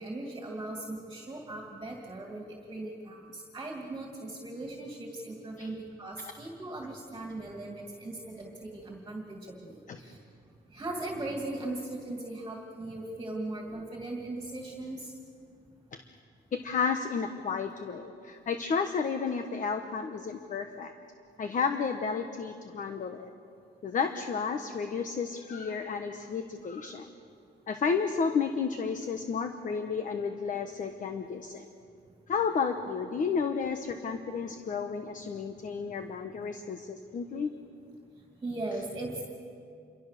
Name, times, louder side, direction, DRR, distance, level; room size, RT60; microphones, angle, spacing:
voice 1, 0.0-10.2 10.7-15.1 38.4-39.2, right 2 dB, 20° right, 1 dB, 2.6 m, -39 dB
voice 2, 16.5-20.9 21.4-23.3 23.8-27.1 27.7-31.7 32.3-37.5, left 5 dB, 45° left, 7 dB, 1.2 m, -32 dB
28.0 x 24.0 x 6.8 m, 2.5 s
cardioid pair, 145°, 19 cm